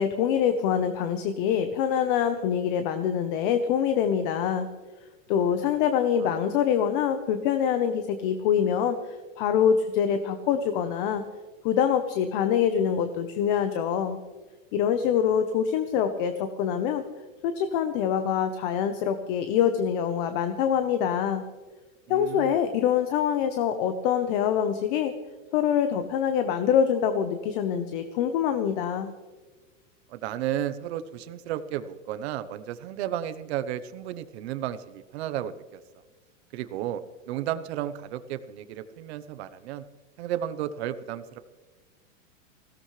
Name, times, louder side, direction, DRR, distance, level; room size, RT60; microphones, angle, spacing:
voice 1, 0.0-4.7 5.3-11.3 11.6-14.2 14.7-17.0 17.4-21.4 22.1-25.1 25.5-29.1, left 8 dB, 40° left, 8 dB, 1.0 m, -25 dB
voice 2, 22.1-22.6 30.1-35.8 36.5-37.0 37.3-39.8 40.2-41.4, right 11 dB, 55° right, 11 dB, 1.0 m, -33 dB
20.0 x 17.0 x 3.3 m, 1.3 s
supercardioid pair, 160°, 39 cm